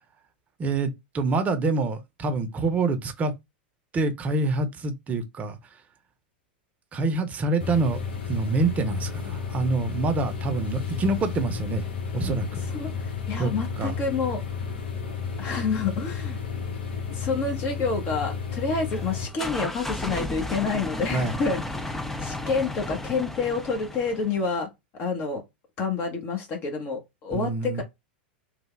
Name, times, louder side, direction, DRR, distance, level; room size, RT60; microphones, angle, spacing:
voice 1, 0.6-3.3 3.9-5.6 6.9-8.0 8.3-11.9 12.1-12.5 13.4-13.5 13.8-13.9 21.1-21.3 27.3-27.8, right 3 dB, 30° right, 0.8 m, -26 dB
sound 1, 7.6-19.2, left 6 dB, 75° left, 1.2 m, -32 dB
voice 2, 13.3-14.4 15.4-16.4 17.1-24.7 25.0-25.4 25.8-27.8, left 4 dB, 40° left, 1.1 m, -28 dB
sound 2, 18.9-24.5, left 1 dB, 5° left, 0.4 m, -34 dB
3.2 x 2.3 x 3.2 m
hypercardioid pair, 100°, 5 cm